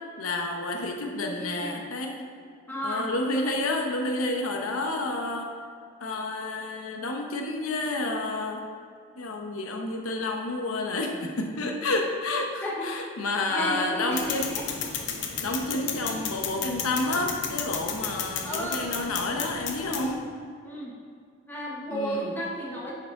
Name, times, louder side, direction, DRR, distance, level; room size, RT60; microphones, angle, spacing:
voice 1, 0.2-2.3 2.8-5.5 6.0-8.6 9.2-14.5 15.2-20.2 21.9-22.3, left 2 dB, 85° left, 2 dB, 0.9 m, -30 dB
voice 2, 1.1-1.8 2.7-3.1 12.6-13.0 13.5-14.6 18.4-19.2 20.6-20.9 21.5-22.9, equal, 10° left, -4 dB, 1.0 m, -33 dB
sound 1, 14.1-20.1, left 7 dB, 55° left, 0.7 m, -33 dB
10.5 x 4.7 x 3.7 m, 2.2 s
head